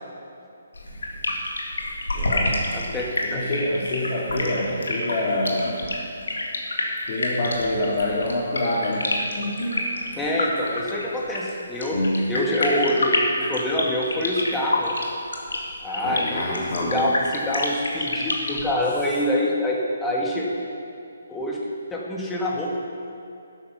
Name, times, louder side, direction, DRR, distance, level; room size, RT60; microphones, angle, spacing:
sound 1, 0.7-18.7, left 2 dB, 85° left, 2.0 m, -28 dB
voice 1, 2.1-2.7 3.2-5.9 7.1-10.0 11.9-12.3 16.0-17.1, left 1 dB, 40° left, -5 dB, 2.2 m, -26 dB
voice 2, 2.7-3.4 10.2-12.0 12.3-15.0 15.8-16.6 16.9-20.5 21.3-21.6 21.9-22.8, left 1 dB, 10° left, -3 dB, 1.8 m, -26 dB
12.0 x 9.3 x 5.8 m, 2.6 s
hypercardioid pair, 150°, 0 cm